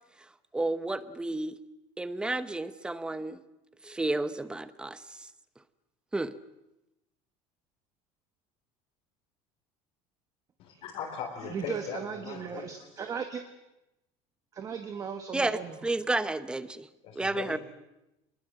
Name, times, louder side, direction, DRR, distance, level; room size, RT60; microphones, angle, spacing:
voice 1, 0.5-1.6 2.0-3.4 3.8-5.3 6.1-6.4 15.3-16.9 17.1-17.6, right 2 dB, 5° right, 13 dB, 0.8 m, -31 dB
voice 2, 10.6-12.7 17.0-17.6, left 7 dB, 50° left, -1 dB, 3.8 m, -39 dB
voice 3, 11.5-13.4 14.5-15.7, right 6 dB, 25° right, 7 dB, 1.3 m, -37 dB
24.5 x 21.5 x 7.7 m, 0.93 s
cardioid pair, 165°, 13 cm